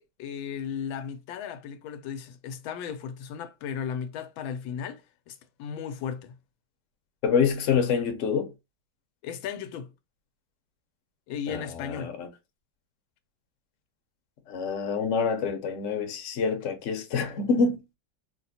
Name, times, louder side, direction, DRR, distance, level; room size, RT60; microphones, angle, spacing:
voice 1, 0.0-6.4 9.2-9.9 11.3-12.1, left 7 dB, 90° left, 1.4 m, -36 dB
voice 2, 7.2-8.5 11.5-12.3 14.5-17.8, left 5 dB, 55° left, 0.8 m, -26 dB
4.2 x 2.2 x 2.7 m
omnidirectional pair, 2.1 m